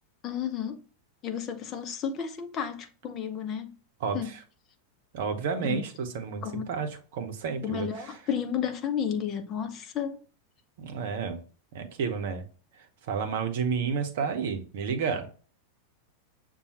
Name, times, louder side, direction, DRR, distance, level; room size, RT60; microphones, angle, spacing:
voice 1, 0.2-0.8 1.2-3.7 4.1-4.3 5.7-5.8 6.4-6.7 7.6-10.2, left 8 dB, 30° left, 0.7 m, -32 dB
voice 2, 4.0-4.4 5.1-8.1 10.8-11.4 11.7-12.4 13.1-15.3, right 6 dB, 55° right, 0.8 m, -31 dB
6.8 x 2.3 x 2.8 m
figure-of-eight pair, 90°, 0 cm